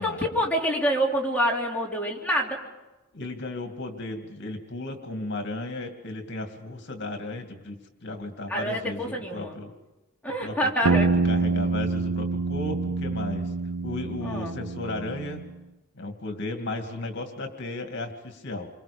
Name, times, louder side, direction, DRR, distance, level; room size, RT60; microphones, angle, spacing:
voice 1, 0.0-2.6 8.5-9.5 10.2-11.1 14.2-14.5, equal, 5° left, -2 dB, 3.0 m, -26 dB
voice 2, 3.1-9.7 10.4-10.6 10.8-11.0 11.2-13.5 13.8-15.5 16.0-18.7, left 2 dB, 55° left, 5 dB, 2.4 m, -35 dB
sound 1, 10.8-15.5, right 4 dB, 85° right, 0.7 m, -26 dB
28.0 x 24.5 x 5.3 m, 1.1 s
head